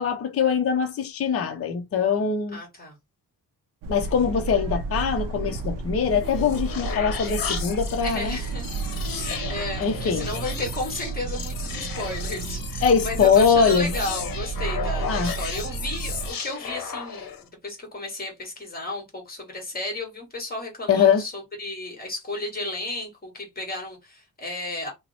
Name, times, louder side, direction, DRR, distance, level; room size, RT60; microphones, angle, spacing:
voice 1, 0.0-2.6 3.9-8.4 9.8-10.3 12.8-13.9 15.1-15.3 20.9-21.2, left 6 dB, 40° left, 0.5 m, -22 dB
voice 2, 2.5-3.0 8.0-8.7 9.1-24.9, left 2 dB, 25° left, 1.3 m, -33 dB
sound 1, 3.8-16.3, right 4 dB, 60° right, 0.5 m, -32 dB
sound 2, 6.0-17.5, left 7 dB, 65° left, 0.8 m, -35 dB
2.9 x 2.0 x 3.9 m
wide cardioid pair, 160°, 38 cm